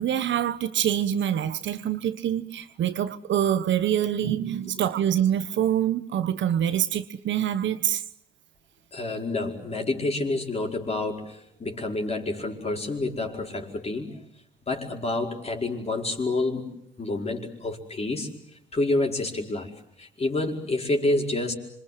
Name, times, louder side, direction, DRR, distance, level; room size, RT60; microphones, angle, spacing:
voice 1, 0.0-8.0, right 10 dB, 70° right, 1.2 m, -25 dB
voice 2, 8.9-14.1 14.7-16.7 17.0-18.3 18.7-19.7 20.0-21.5, left 2 dB, 30° left, 5.0 m, -28 dB
26.5 x 24.5 x 7.8 m
cardioid pair, 90°, 20 cm